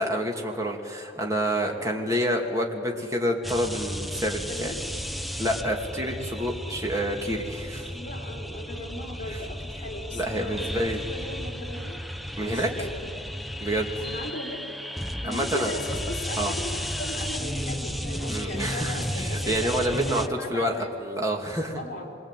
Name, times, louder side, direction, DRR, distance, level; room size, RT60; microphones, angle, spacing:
voice 1, 0.0-4.7 5.4-7.9 9.3-9.4 10.1-11.0 12.4-12.7 13.6-13.9 15.2-15.7 16.4-16.5 18.3-21.8, equal, 15° right, 0 dB, 2.8 m, -28 dB
sound 1, 3.4-20.3, equal, ahead, 0.7 m, -33 dB
voice 2, 4.4-4.8 7.9-12.0 12.5-13.1 14.0-14.8 15.2-20.9 21.7-22.2, left 1 dB, 45° left, -1 dB, 3.8 m, -37 dB
26.0 x 23.0 x 9.3 m, 2.5 s
head